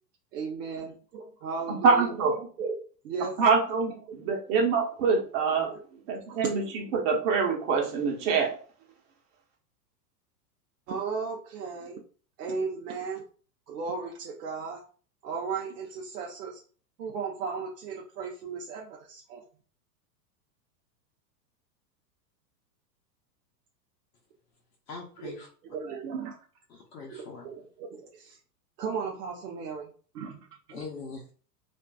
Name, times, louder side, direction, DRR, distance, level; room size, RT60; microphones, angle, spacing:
voice 1, 0.3-2.8 3.0-3.3 4.2-4.3 5.6-5.8 6.4-6.6 10.9-12.0 12.4-13.2 13.7-14.8 15.2-16.6 17.0-19.4 25.2-25.3 25.7-26.4 27.1-28.4 28.8-29.9 30.1-30.9, right 5 dB, 70° right, -1 dB, 0.7 m, -36 dB
voice 2, 1.8-2.3 3.4-5.7 6.1-6.6 6.9-8.6, right 5 dB, 50° right, 0 dB, 1.0 m, -25 dB
voice 3, 24.9-25.5 26.7-27.4 30.7-31.3, left 4 dB, 80° left, -2 dB, 0.8 m, -41 dB
2.5 x 2.4 x 2.2 m, 0.41 s
hypercardioid pair, 105°, 49 cm